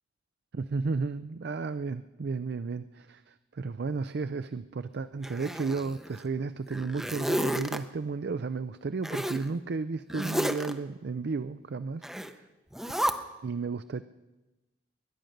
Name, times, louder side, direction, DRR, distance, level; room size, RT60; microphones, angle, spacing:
voice 1, 0.5-12.5 13.4-14.0, right 4 dB, 60° right, 12 dB, 0.4 m, -33 dB
Zipper (clothing), 5.2-6.2 6.7-7.8 9.0-9.5 10.1-10.7 12.0-12.3 12.7-13.1, equal, ahead, 0.7 m, -31 dB
21.5 x 10.5 x 6.5 m, 1.1 s
head